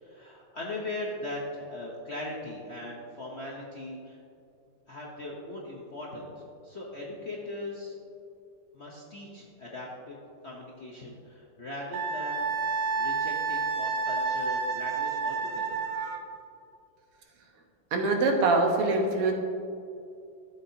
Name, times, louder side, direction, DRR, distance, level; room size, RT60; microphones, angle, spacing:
voice 1, 0.0-4.2 4.9-8.0 8.7-10.1 10.4-12.4 13.0-15.8, left 2 dB, 55° left, -3 dB, 0.7 m, -39 dB
Wind instrument woodwind instrument, 11.9-16.3, right 4 dB, 65° right, 1.3 m, -30 dB
voice 2, 17.9-19.3, right 3 dB, 90° right, 2 dB, 2.1 m, -24 dB
13.0 x 7.4 x 2.8 m, 2.5 s
omnidirectional pair, 2.4 m